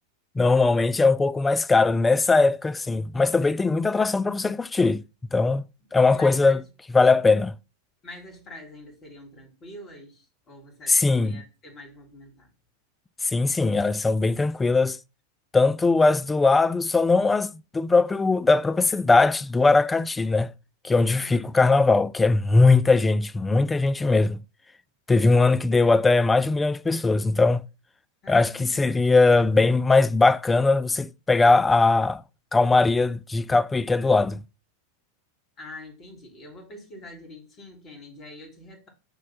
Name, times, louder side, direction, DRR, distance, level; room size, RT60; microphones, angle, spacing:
voice 1, 0.4-5.0 5.3-5.6 5.9-6.6 6.9-7.5 10.9-11.4 13.2-15.0 15.5-20.5 20.8-24.4 25.1-27.6 28.3-32.2 32.5-34.4, left 3 dB, 10° left, 0.3 m, -20 dB
voice 2, 6.1-6.7 8.0-12.5 21.1-21.5 28.2-28.8 35.6-38.9, left 1 dB, 30° left, 2.2 m, -45 dB
5.3 x 3.2 x 5.5 m
figure-of-eight pair, 90°, 0 cm